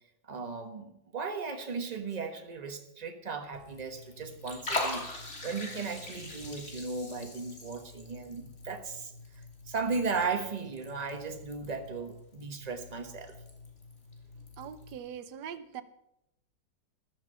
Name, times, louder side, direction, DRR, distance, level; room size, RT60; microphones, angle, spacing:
voice 1, 0.2-9.1 9.7-13.3, right 4 dB, 25° right, 6 dB, 1.3 m, -36 dB
Liquid, 3.5-15.0, left 2 dB, 40° left, 3.0 m, -42 dB
voice 2, 14.6-15.8, right 8 dB, 70° right, 11 dB, 1.4 m, -42 dB
14.5 x 12.5 x 5.6 m, 0.83 s
omnidirectional pair, 1.9 m